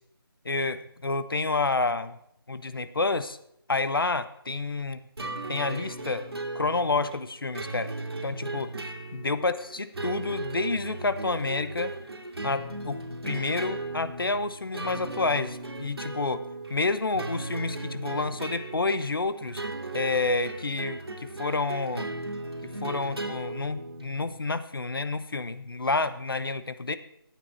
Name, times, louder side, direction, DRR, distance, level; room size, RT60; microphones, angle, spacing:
voice 1, 0.4-2.2 2.5-3.4 3.7-5.0 5.5-6.2 6.5-7.9 8.2-8.7 9.1-11.9 12.4-13.0 13.2-16.4 16.7-19.6 19.9-22.1 22.6-27.0, left 3 dB, 65° left, 13 dB, 0.9 m, -29 dB
sound 1, 5.2-24.4, right 2 dB, 80° right, 2.3 m, -37 dB
14.0 x 9.2 x 4.4 m, 0.75 s
figure-of-eight pair, 180°, 13 cm